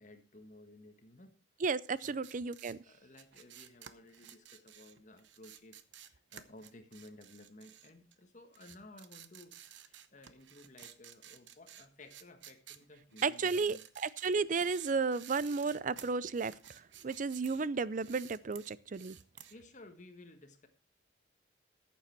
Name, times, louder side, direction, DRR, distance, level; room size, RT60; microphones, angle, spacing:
voice 1, 0.0-1.4 2.0-2.2 2.8-9.6 9.8-13.8 19.5-20.7, left 2 dB, 40° left, 1.5 m, -56 dB
voice 2, 1.6-2.8 13.2-16.5 17.0-19.2, right 4 dB, 45° right, 0.5 m, -33 dB
sound 1, 1.9-8.2 8.5-17.7 17.9-19.5, right 10 dB, 80° right, 0.9 m, -54 dB
14.0 x 7.7 x 4.4 m
head